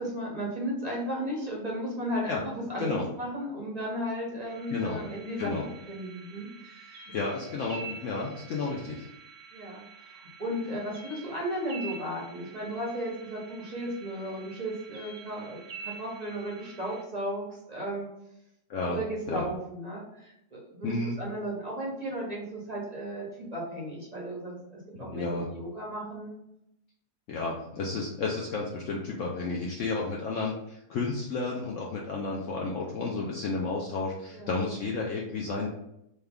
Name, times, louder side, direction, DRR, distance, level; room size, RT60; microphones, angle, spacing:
voice 1, 0.0-5.5 5.9-7.1 9.5-9.8 10.4-18.1 18.9-26.4 32.5-32.7 34.3-34.6, equal, 40° right, -4 dB, 0.6 m, -35 dB
sound 1, 4.5-17.0, right 6 dB, 80° right, 1.2 m, -47 dB
voice 2, 4.7-5.0 5.4-5.6 7.1-9.1 18.7-19.0 19.3-19.5 20.8-21.2 24.9-25.5 27.3-35.7, left 3 dB, 70° left, -3 dB, 0.8 m, -32 dB
3.2 x 2.3 x 3.4 m, 0.80 s
omnidirectional pair, 1.7 m